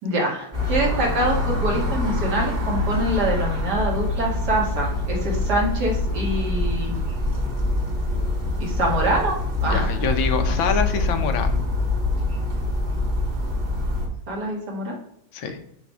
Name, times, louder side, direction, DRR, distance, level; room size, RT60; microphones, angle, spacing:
voice 1, 0.0-7.0 8.6-9.4 9.6-9.9 10.4-10.5 14.3-15.0, right 1 dB, 55° right, -2 dB, 2.4 m, -25 dB
sound 1, 0.5-14.1, left 2 dB, 30° right, 1.6 m, -25 dB
voice 2, 9.6-11.6 15.3-15.6, left 6 dB, 85° left, 6 dB, 1.7 m, -25 dB
8.2 x 3.4 x 5.6 m, 0.74 s
omnidirectional pair, 2.1 m